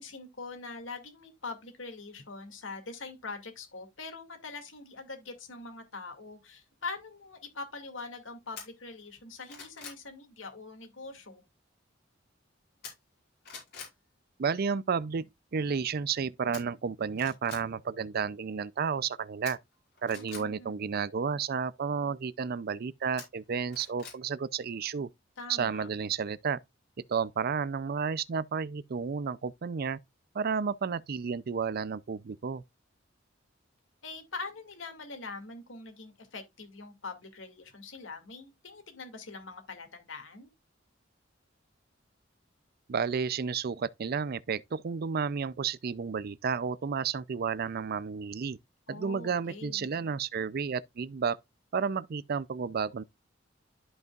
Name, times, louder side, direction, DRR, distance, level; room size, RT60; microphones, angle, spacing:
voice 1, 0.0-11.4 20.1-20.8 25.4-25.9 34.0-40.5 48.9-49.9, left 3 dB, 80° left, 2.3 m, -43 dB
sound 1, 8.6-8.7 9.2-10.0 12.8-13.2 13.4-13.9 16.5-16.6 17.1-17.6 19.5-20.4 23.2-24.2 24.6-24.7, left 6 dB, 60° left, 5.2 m, -45 dB
voice 2, 14.4-15.3 15.5-19.6 20.0-25.1 25.5-26.6 27.1-30.0 30.3-32.6 42.9-48.6 48.9-51.4 51.7-53.0, right 6 dB, 50° right, 0.5 m, -32 dB
13.0 x 5.5 x 2.4 m
head